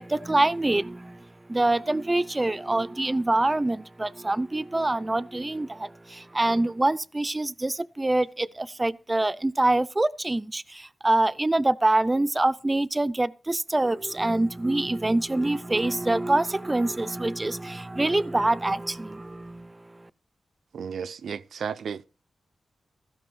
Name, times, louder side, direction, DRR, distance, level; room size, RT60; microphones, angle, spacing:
voice 1, 0.0-20.1, right 2 dB, 20° right, 0.5 m, -25 dB
voice 2, 20.7-22.0, right 6 dB, 90° right, 0.5 m, -33 dB
15.5 x 5.9 x 6.2 m
wide cardioid pair, 95°, 0 cm